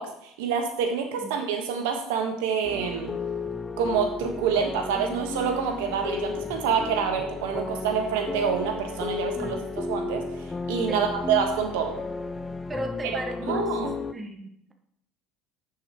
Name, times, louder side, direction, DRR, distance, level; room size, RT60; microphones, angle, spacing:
voice 1, 0.0-3.1 3.8-10.2 10.7-11.9 13.5-13.9, right 6 dB, 90° right, 3 dB, 1.3 m, -27 dB
sound 1, 2.6-14.1, left 4 dB, 15° left, 0.4 m, -34 dB
voice 2, 10.9-11.2 12.7-13.7 14.1-14.7, right 2 dB, 15° right, 4 dB, 1.1 m, -36 dB
9.9 x 5.5 x 3.0 m, 0.73 s
supercardioid pair, 120°, 0 cm